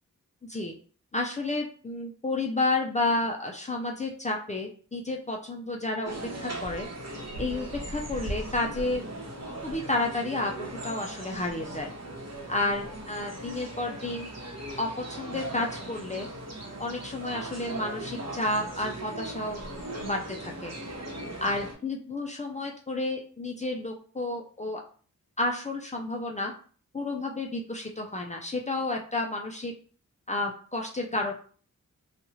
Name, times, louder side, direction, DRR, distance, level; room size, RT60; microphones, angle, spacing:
voice 1, 0.4-0.7 1.1-6.2 6.4-6.9 7.4-9.0 9.6-11.9 12.5-14.3 14.8-16.3 16.8-19.6 20.0-20.7 21.4-24.8 25.4-26.5 26.9-29.7 30.3-31.4, left 2 dB, 20° left, 1 dB, 0.4 m, -31 dB
train station outdoor platform birds people, 6.1-21.7, right 1 dB, 50° right, 0.9 m, -38 dB
2.8 x 2.3 x 2.9 m, 0.42 s
wide cardioid pair, 85°, 33 cm